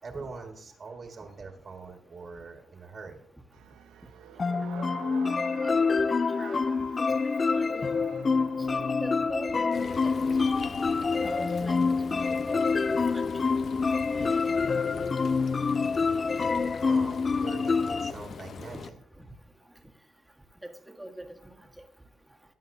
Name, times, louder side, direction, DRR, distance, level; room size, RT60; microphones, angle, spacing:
voice 1, 0.0-3.2 16.8-18.9, right 4 dB, 40° right, 3 dB, 1.7 m, -43 dB
sound 1, 3.5-9.0, right 9 dB, 90° right, 0.8 m, -46 dB
sound 2, 4.4-18.1, left 4 dB, 35° left, 0.3 m, -27 dB
voice 2, 6.4-6.7 7.5-7.9 8.6-9.9 11.2-12.6 13.1-13.2 14.0-14.8 18.6-18.7 21.0-21.5, right 1 dB, 5° right, 2 dB, 1.6 m, -42 dB
Frying (food), 9.7-18.9, left 5 dB, 50° left, 0.8 m, -42 dB
19.5 x 8.9 x 2.7 m, 0.71 s
cardioid pair, 90°, 0 cm